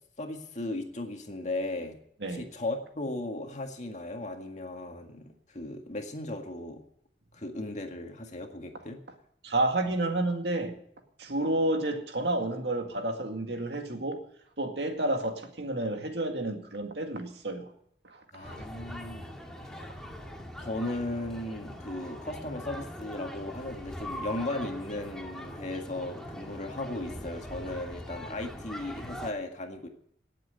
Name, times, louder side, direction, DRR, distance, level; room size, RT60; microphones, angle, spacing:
voice 1, 0.2-2.0 2.3-6.8 7.3-9.0 18.3-20.0 20.6-29.9, left 2 dB, 40° left, 4 dB, 1.9 m, -36 dB
voice 2, 9.4-10.8 11.2-14.2 14.6-17.7 18.0-18.6, right 1 dB, 70° right, 4 dB, 2.1 m, -30 dB
sound 1, 18.4-29.3, left 1 dB, 5° left, 1.7 m, -42 dB
18.0 x 7.7 x 8.0 m, 0.69 s
head